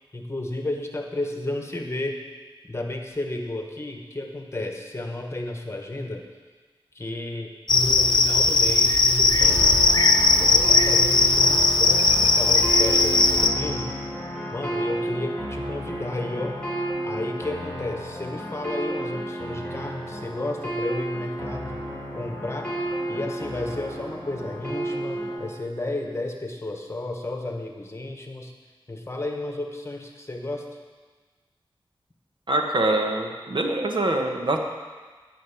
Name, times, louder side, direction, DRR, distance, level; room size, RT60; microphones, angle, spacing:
voice 1, 0.1-2.2 2.6-6.3 6.9-9.7 10.4-13.9 14.5-16.6 17.0-21.8 22.1-22.7 23.1-28.5 28.9-30.6, left 2 dB, 30° left, 2 dB, 1.4 m, -32 dB
Cricket, 7.7-13.5, left 3 dB, 50° left, 0.9 m, -18 dB
sound 1, 9.4-25.4, right 1 dB, 10° left, 3.1 m, -32 dB
voice 2, 32.5-34.6, right 2 dB, 60° right, 3 dB, 1.3 m, -24 dB
11.0 x 6.6 x 8.6 m, 1.4 s
wide cardioid pair, 85°, 9 cm